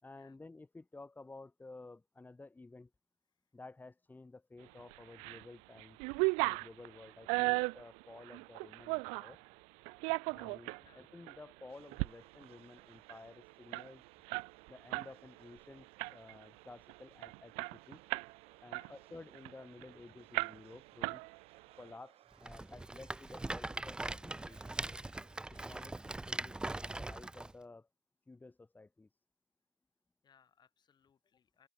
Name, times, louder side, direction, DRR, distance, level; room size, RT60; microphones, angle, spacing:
voice 1, 0.0-2.9 3.5-6.0 6.4-9.4 10.3-14.0 14.7-18.0 18.6-21.2 21.8-24.8 25.5-27.9 28.3-29.1, left 3 dB, 15° left, 5.3 m, -53 dB
sound 1, 4.9-5.4 5.8-9.4 9.9-10.8 11.3-11.4 11.8-12.1 12.4-12.5 12.8-15.1 15.4-15.6 16.0-16.4 16.9-17.0 17.2-18.4 18.7-19.9 20.3-20.8 21.0-21.7, right 32 dB, 85° right, 0.5 m, -36 dB
voice 2, 10.8-11.1 18.6-19.0 30.2-31.7, left 7 dB, 40° left, 7.9 m, -68 dB
sound 2, 11.7-25.9, right 13 dB, 60° right, 6.9 m, -67 dB
Rattle, 22.4-27.5, right 2 dB, 10° right, 0.4 m, -41 dB
supercardioid pair, 90°, 11 cm